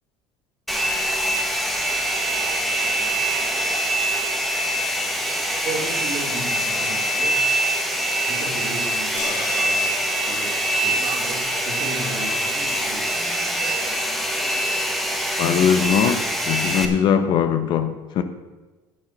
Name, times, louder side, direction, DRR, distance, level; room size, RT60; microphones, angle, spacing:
Domestic sounds home sounds, 0.7-16.9, right 1 dB, ahead, 1.4 m, -24 dB
voice 1, 5.6-7.5 8.3-13.3, right 2 dB, 55° right, 1 dB, 2.9 m, -34 dB
sound 1, 9.2-13.5, left 4 dB, 80° left, 2.0 m, -38 dB
voice 2, 15.4-18.2, left 8 dB, 55° left, 10 dB, 1.0 m, -20 dB
8.9 x 8.1 x 7.3 m, 1.2 s
supercardioid pair, 115°, 10 cm